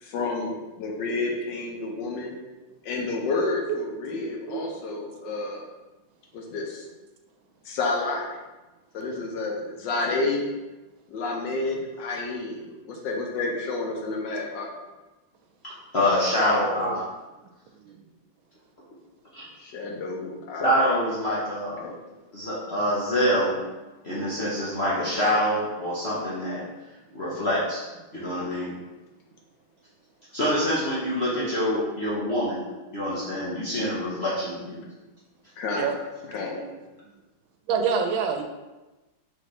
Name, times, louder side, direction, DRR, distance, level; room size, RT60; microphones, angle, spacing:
voice 1, 0.0-2.4 2.8-5.6 6.3-6.8 7.6-8.4 8.9-10.5 11.1-14.7 19.6-20.9 21.8-21.9 35.6-36.0 36.3-36.6, left 3 dB, 70° left, 0 dB, 1.3 m, -30 dB
voice 2, 15.9-17.0 19.3-19.4 20.6-21.9 22.3-23.6 24.0-26.6 27.1-27.9 28.1-28.8 30.3-32.6 32.9-34.8 36.5-36.6, equal, 50° left, -7 dB, 0.8 m, -25 dB
voice 3, 37.7-38.4, right 6 dB, 85° right, 4 dB, 1.4 m, -27 dB
4.1 x 3.7 x 3.2 m, 1.1 s
omnidirectional pair, 2.1 m